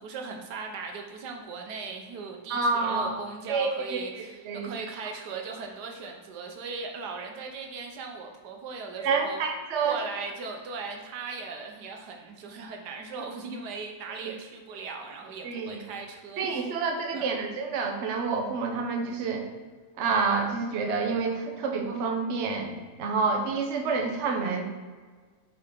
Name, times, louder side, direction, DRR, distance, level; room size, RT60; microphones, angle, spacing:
voice 1, 0.0-9.4 9.8-16.7 17.1-17.5, right 4 dB, 85° right, 2 dB, 1.4 m, -38 dB
voice 2, 2.5-3.1 3.5-4.7 9.0-10.0 15.4-15.8 16.4-19.4 20.0-24.6, right 4 dB, 55° right, 3 dB, 0.9 m, -28 dB
6.7 x 3.8 x 3.7 m, 1.5 s
omnidirectional pair, 1.7 m